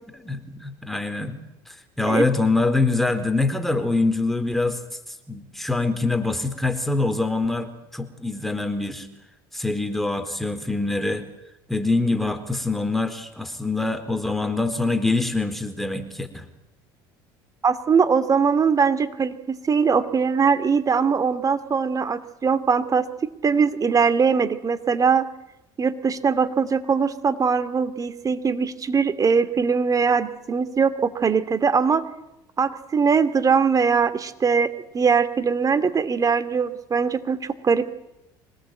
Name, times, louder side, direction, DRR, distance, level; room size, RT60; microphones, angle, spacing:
voice 1, 0.2-1.4 2.0-4.8 5.3-9.1 9.5-11.2 11.7-16.4, left 3 dB, ahead, 7 dB, 3.9 m, -24 dB
voice 2, 17.6-23.1 23.4-25.3 25.8-32.0 32.6-38.0, right 5 dB, 30° right, 13 dB, 2.5 m, -21 dB
25.0 x 18.5 x 9.1 m, 0.89 s
hypercardioid pair, 75°, 11 cm